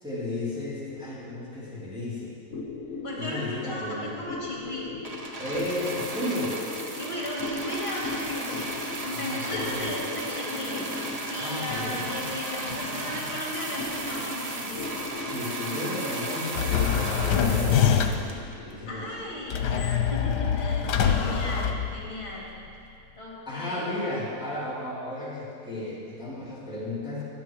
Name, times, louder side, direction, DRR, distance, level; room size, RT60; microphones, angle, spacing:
voice 1, 0.0-2.4 3.1-4.2 5.4-6.6 9.1-10.0 11.4-12.1 15.2-18.0 18.6-19.1 23.5-27.2, left 2 dB, 5° right, -8 dB, 2.6 m, -33 dB
sound 1, 2.5-21.3, left 3 dB, 55° left, 1.3 m, -39 dB
voice 2, 3.0-4.9 6.9-8.7 9.0-10.9 11.3-14.9 18.9-22.4 23.1-23.9, left 1 dB, 35° left, -5 dB, 3.4 m, -36 dB
sound 2, 5.0-18.7 19.5-19.6, right 2 dB, 30° right, 0.8 m, -35 dB
sound 3, 16.5-18.4 19.5-22.4, left 7 dB, 80° left, 1.4 m, -24 dB
21.0 x 7.5 x 4.6 m, 2.5 s
omnidirectional pair, 1.7 m